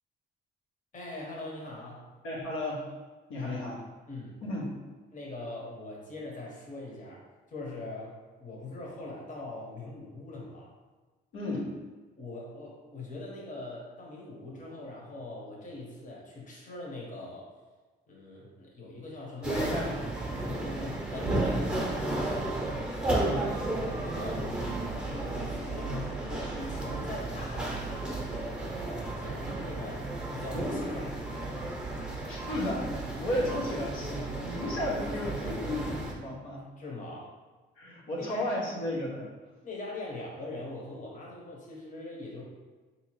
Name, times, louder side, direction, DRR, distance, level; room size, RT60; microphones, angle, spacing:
voice 1, 0.9-2.0 3.4-3.6 4.1-4.4 5.1-10.7 12.2-17.5 18.1-19.6 20.4-22.7 23.0-31.5 36.8-37.3 38.2-38.6 39.6-42.4, left 2 dB, 40° left, -3 dB, 1.0 m, -42 dB
voice 2, 2.2-2.9 3.3-3.8 4.4-4.7 11.3-11.7 19.4-19.9 23.2-23.5 25.8-26.0 32.3-32.9 33.2-36.7 37.7-39.3, left 1 dB, 90° left, -5 dB, 0.9 m, -33 dB
sound 1, 19.4-36.1, right 2 dB, 5° right, 0.7 m, -33 dB
3.7 x 2.8 x 3.0 m, 1.3 s
cardioid pair, 90°, 20 cm